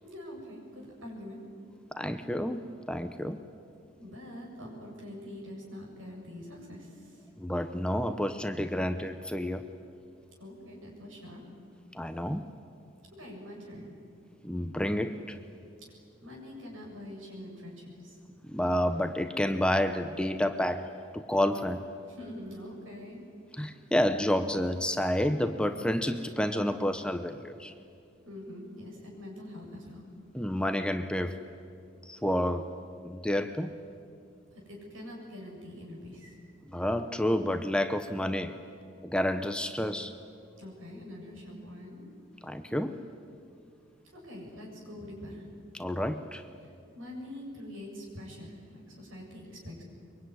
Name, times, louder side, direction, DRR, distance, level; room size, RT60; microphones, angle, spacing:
voice 1, 0.0-1.4 4.0-7.2 10.4-11.4 13.1-13.9 16.2-18.2 22.1-23.2 28.2-30.0 34.5-36.3 40.6-42.1 44.1-45.5 46.6-49.8, left 1 dB, 75° right, -1 dB, 7.6 m, -44 dB
voice 2, 1.9-3.4 7.4-9.6 11.9-12.4 14.4-15.4 18.4-21.8 23.6-27.7 30.3-31.4 32.0-32.7 33.0-33.7 36.7-38.5 39.0-40.2 42.4-43.0 45.8-46.4, left 1 dB, 5° left, 8 dB, 0.7 m, -29 dB
23.5 x 23.5 x 9.7 m, 2.4 s
head